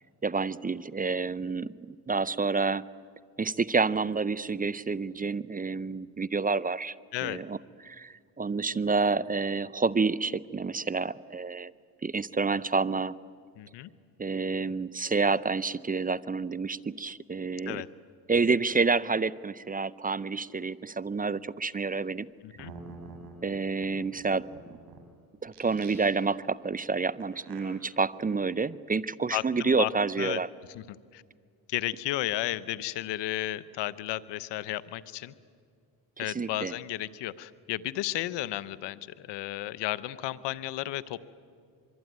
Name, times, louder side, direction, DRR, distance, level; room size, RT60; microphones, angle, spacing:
voice 1, 0.2-1.7 2.1-2.9 3.4-6.9 7.2-7.6 7.8-11.7 12.0-13.1 14.2-17.8 18.3-22.3 23.4-24.5 25.4-30.5 36.2-36.7, right 4 dB, 20° right, 19 dB, 0.6 m, -29 dB
voice 2, 13.6-13.9 17.7-17.9 22.4-22.7 29.3-29.9 30.2-30.4 30.7-31.2 31.7-35.3 36.2-41.2, left 15 dB, 90° left, 17 dB, 1.0 m, -33 dB
sound 1, 22.3-22.4 22.6-25.0 25.5-26.4 27.2-27.6, right 3 dB, 65° right, 7.9 m, -47 dB
24.0 x 24.0 x 9.4 m, 2.1 s
cardioid pair, 75°, 41 cm